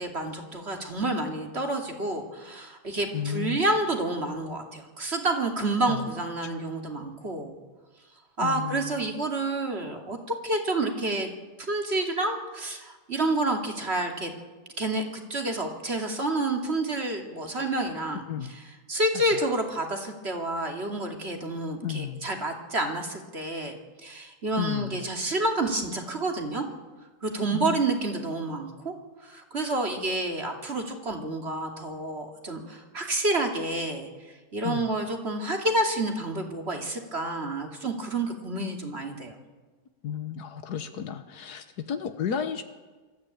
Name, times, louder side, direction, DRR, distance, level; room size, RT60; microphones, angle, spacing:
voice 1, 0.0-7.6 8.4-10.2 10.4-11.3 11.7-14.3 14.8-18.2 18.5-18.6 18.9-26.6 27.2-28.9 29.2-34.1 34.5-39.3, right 2 dB, 40° right, 3 dB, 2.8 m, -29 dB
voice 2, 3.1-3.6 5.9-6.1 8.4-9.0 18.3-18.5 19.3-19.4 21.8-22.3 24.6-25.0 27.5-27.8 34.6-34.8 40.0-42.6, left 8 dB, 90° left, 8 dB, 1.7 m, -33 dB
24.5 x 13.5 x 8.6 m, 1.3 s
omnidirectional pair, 1.6 m